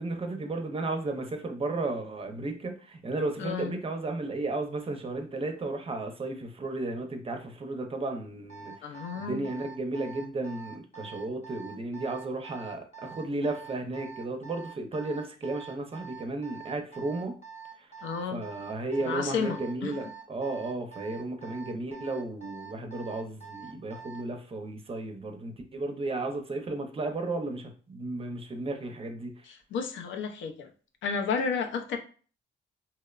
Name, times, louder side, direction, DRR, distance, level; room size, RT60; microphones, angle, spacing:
voice 1, 0.0-17.4 17.8-17.9 18.2-29.4, right 2 dB, 30° right, 0.5 m, -34 dB
voice 2, 3.4-3.7 8.8-9.4 18.0-18.4 19.0-19.9 29.5-30.7 31.0-32.0, left 5 dB, 70° left, 0.4 m, -32 dB
Alarm, 8.5-24.3, right 7 dB, 35° left, 0.8 m, -45 dB
2.8 x 2.0 x 2.3 m
cardioid pair, 90°, 20 cm